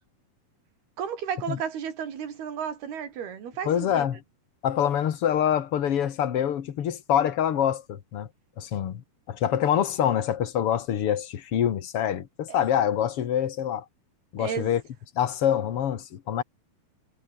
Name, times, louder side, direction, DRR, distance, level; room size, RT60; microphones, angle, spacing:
voice 1, 1.0-4.1 14.4-14.7, right 8 dB, 90° right, 5.2 m, -33 dB
voice 2, 3.7-4.2 4.6-8.3 8.6-9.0 9.3-13.9 14.3-14.8 15.2-16.4, left 9 dB, 50° left, 1.9 m, -25 dB
omnidirectional pair, 4.3 m